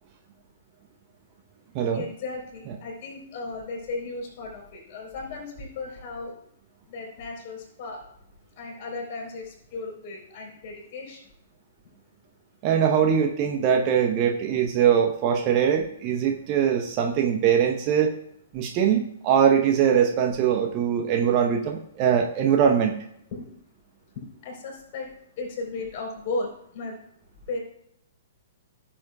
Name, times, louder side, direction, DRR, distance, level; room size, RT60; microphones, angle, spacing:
voice 1, 1.9-6.3 6.9-8.0 8.6-11.2 23.3-23.5 24.4-25.1 25.4-27.0 27.5-27.6, left 3 dB, 40° left, -2 dB, 4.0 m, -35 dB
voice 2, 12.6-18.1 18.5-23.0, right 8 dB, 35° right, 3 dB, 0.9 m, -22 dB
15.0 x 7.3 x 2.3 m, 0.73 s
figure-of-eight pair, 115°, 0 cm